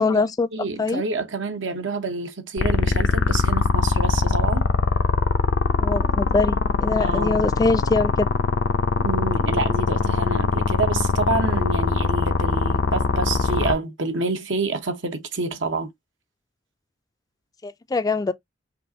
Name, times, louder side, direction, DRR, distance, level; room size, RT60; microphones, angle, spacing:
voice 1, 0.0-0.5 0.8-1.0 5.8-8.3 17.6-18.3, left 3 dB, 20° left, 0.3 m, -23 dB
voice 2, 0.5-4.7 7.0-7.5 9.0-15.9, right 3 dB, 85° right, 0.9 m, -28 dB
sound 1, 2.6-13.7, left 4 dB, 80° left, 0.6 m, -21 dB
5.4 x 2.5 x 2.7 m
head